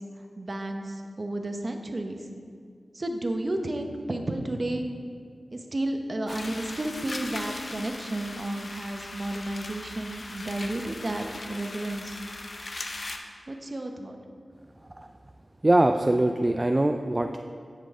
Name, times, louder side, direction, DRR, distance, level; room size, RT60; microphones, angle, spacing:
voice 1, 0.4-2.3 2.9-4.8 5.5-12.2 13.5-14.2, right 1 dB, 40° right, 4 dB, 0.8 m, -32 dB
sound 1, 6.3-13.2, left 2 dB, 50° left, 0.7 m, -39 dB
voice 2, 15.6-17.4, right 1 dB, 25° right, 5 dB, 0.3 m, -22 dB
10.5 x 7.5 x 3.6 m, 2.2 s
wide cardioid pair, 90°, 0 cm